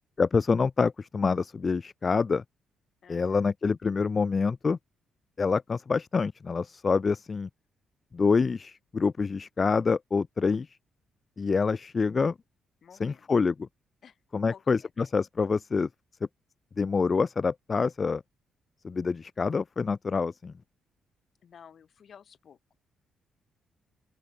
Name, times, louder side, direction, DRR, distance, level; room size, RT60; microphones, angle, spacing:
voice 1, 0.2-2.4 3.1-4.8 5.4-7.5 8.1-10.7 11.4-12.3 13.0-13.7 14.3-15.9 16.8-18.2 18.8-20.5, left 4 dB, 25° left, 0.4 m, -26 dB
voice 2, 3.0-3.5 12.8-13.3 14.0-14.2 14.4-14.9 21.4-22.8, left 7 dB, 40° left, 4.5 m, -53 dB
open air
cardioid pair, 180°, 0 cm